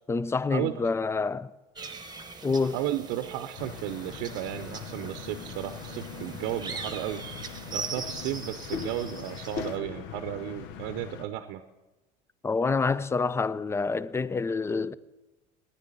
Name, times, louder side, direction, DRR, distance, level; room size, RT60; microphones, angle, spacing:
voice 1, 0.1-1.5 2.4-2.8 12.4-14.9, left 4 dB, 15° left, 0.5 m, -27 dB
sound 1, 1.8-9.8, right 4 dB, 20° right, 1.2 m, -41 dB
voice 2, 2.7-11.6, right 13 dB, 70° right, 0.8 m, -34 dB
sound 2, 3.6-11.3, left 8 dB, 65° left, 0.9 m, -40 dB
9.8 x 9.8 x 8.6 m
supercardioid pair, 90°, 19 cm